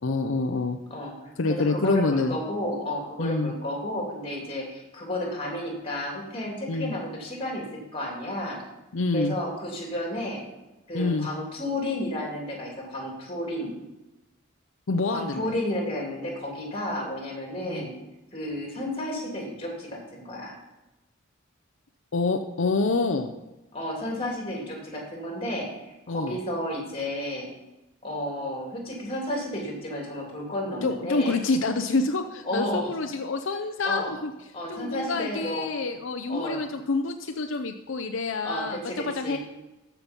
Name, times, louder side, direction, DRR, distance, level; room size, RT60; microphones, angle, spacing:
voice 1, 0.0-0.8 1.4-2.4 3.2-3.5 6.7-6.9 8.9-9.3 10.9-11.3 14.9-15.4 17.6-17.9 22.1-23.3 26.1-26.4 30.8-34.3 34.7-38.8 39.1-39.4, left 3 dB, 70° left, 6 dB, 0.6 m, -27 dB
voice 2, 0.9-8.6 9.1-10.4 10.9-13.7 15.1-18.0 18.3-20.6 23.7-27.5 28.0-31.4 32.4-32.9 33.8-34.1 34.5-35.7 36.3-36.6 38.4-39.4, left 1 dB, 25° left, 0 dB, 2.9 m, -32 dB
14.0 x 5.9 x 5.3 m, 1.0 s
head